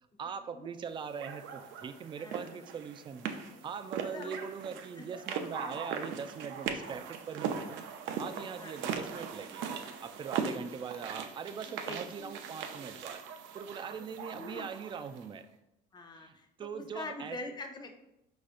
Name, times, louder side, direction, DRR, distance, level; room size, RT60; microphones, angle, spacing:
voice 1, 0.2-3.3 3.6-7.8 8.2-13.2 13.5-15.5 16.1-17.4, right 6 dB, 25° right, 10 dB, 0.3 m, -41 dB
sound 1, 1.2-15.3, right 6 dB, 60° right, 0.6 m, -40 dB
voice 2, 4.0-4.3 5.0-5.1 8.6-8.8 11.7-12.3 14.3-14.7 15.9-18.0, left 3 dB, 20° left, 4 dB, 0.7 m, -44 dB
4.9 x 4.1 x 2.5 m, 0.87 s
supercardioid pair, 95°, 21 cm